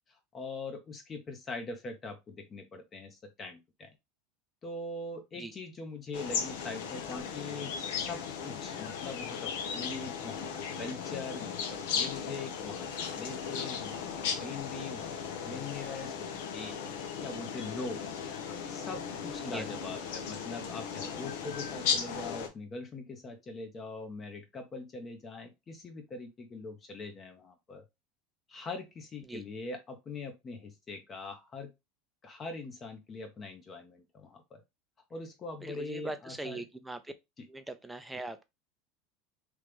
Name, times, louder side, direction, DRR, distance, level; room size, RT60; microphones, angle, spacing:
voice 1, 0.3-3.9 4.6-10.5 10.8-12.9 13.2-14.0 14.4-15.1 15.4-18.0 18.7-27.8 28.5-31.7 32.2-34.6 35.1-36.6, left 3 dB, 30° left, 0.8 m, -42 dB
sound 1, 6.1-22.5, left 6 dB, 75° left, 0.7 m, -36 dB
voice 2, 35.6-37.1 37.5-38.4, right 2 dB, 5° right, 0.5 m, -41 dB
3.0 x 2.5 x 3.4 m
supercardioid pair, 105°, 0 cm